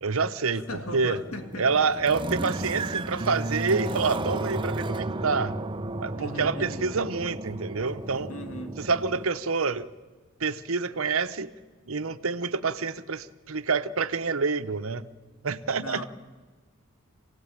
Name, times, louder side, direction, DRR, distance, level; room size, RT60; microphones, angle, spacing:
voice 1, 0.0-1.2 1.6-5.6 6.0-8.3 8.8-9.9 10.4-11.5 11.9-15.1 15.4-16.0, right 4 dB, 75° right, 1.0 m, -27 dB
voice 2, 0.5-1.9 6.2-6.9 8.3-8.9 15.8-16.1, left 1 dB, 80° left, 2.2 m, -38 dB
sound 1, 0.7-9.2, right 2 dB, 25° right, 0.7 m, -33 dB
26.5 x 17.5 x 9.0 m
head